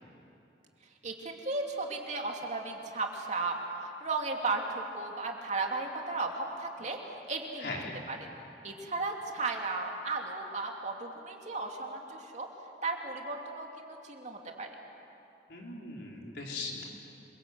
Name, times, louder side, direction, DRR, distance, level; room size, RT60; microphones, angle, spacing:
voice 1, 1.0-3.6 4.0-7.0 7.3-7.7 8.1-8.3 8.6-12.5 12.8-14.7, right 3 dB, 40° right, 1 dB, 2.8 m, -35 dB
voice 2, 7.6-8.0 15.5-16.8, left 3 dB, 70° left, -1 dB, 4.5 m, -39 dB
27.0 x 24.0 x 8.2 m, 2.7 s
head